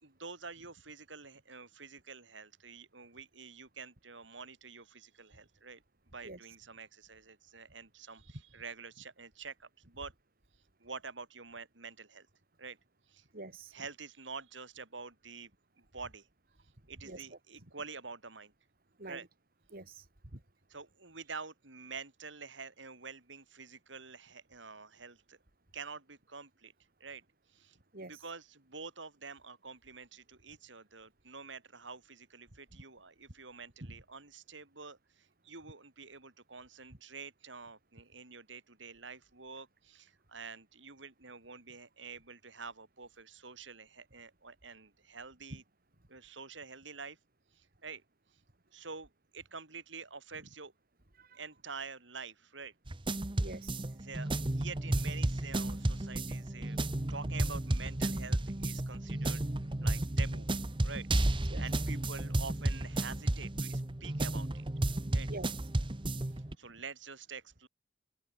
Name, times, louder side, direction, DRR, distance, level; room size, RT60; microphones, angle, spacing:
voice 1, 0.0-5.8 6.1-10.1 10.8-12.3 12.6-12.8 13.1-13.3 13.7-15.5 15.8-16.3 16.9-18.5 19.0-19.3 20.7-25.4 25.7-26.7 27.0-27.2 27.5-45.6 46.1-47.2 47.5-48.0 48.7-50.7 51.3-52.7 53.9-56.8 57.1-59.4 59.8-60.5 60.8-61.1 61.6-64.6 65.1-65.3 66.3-67.7, right 4 dB, 70° right, 3.9 m, -47 dB
voice 2, 13.3-13.7 17.0-17.3 19.0-19.2 19.7-20.1 20.3-20.4 27.9-28.2 51.2-51.4 53.4-53.9 61.5-61.6 65.3-65.5, right 2 dB, 50° right, 2.7 m, -46 dB
sound 1, 52.9-66.6, right 1 dB, 25° right, 1.0 m, -33 dB
open air
head